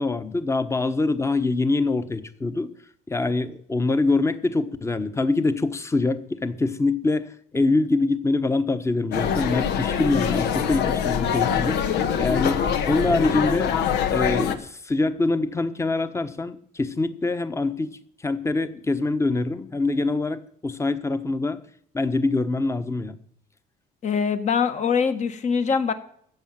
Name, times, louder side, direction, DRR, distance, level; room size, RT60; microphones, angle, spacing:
voice 1, 0.0-2.7 3.1-13.8 14.1-21.6 21.9-23.2, left 3 dB, 15° left, 11 dB, 1.1 m, -24 dB
sound 1, 9.1-14.6, left 8 dB, 80° left, 1.3 m, -24 dB
voice 2, 24.0-25.9, left 6 dB, 45° left, 9 dB, 1.6 m, -23 dB
14.5 x 7.1 x 9.2 m, 0.64 s
cardioid pair, 110°, 17 cm